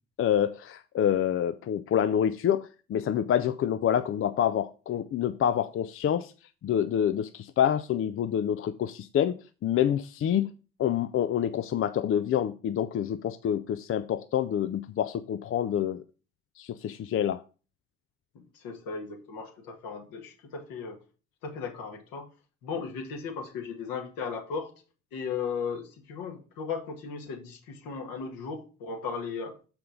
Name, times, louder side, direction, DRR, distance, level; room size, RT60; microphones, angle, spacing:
voice 1, 0.2-6.3 6.6-10.5 10.8-16.0 16.6-17.4, left 9 dB, 35° left, 0.5 m, -27 dB
voice 2, 18.3-21.0 21.4-22.3 22.6-24.7 25.1-29.5, left 5 dB, 65° left, 2.0 m, -36 dB
6.7 x 5.7 x 5.0 m
hypercardioid pair, 50°, 37 cm